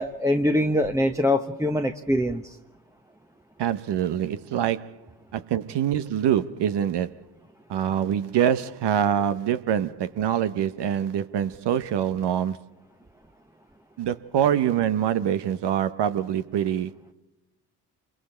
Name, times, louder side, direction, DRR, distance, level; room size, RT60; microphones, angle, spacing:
voice 1, 0.0-2.5, left 1 dB, 5° right, 1.0 m, -23 dB
voice 2, 3.6-5.0 5.3-7.2 7.7-12.7 14.0-16.9, right 9 dB, 65° right, 1.0 m, -25 dB
27.0 x 23.5 x 4.4 m
hypercardioid pair, 45°, 45 cm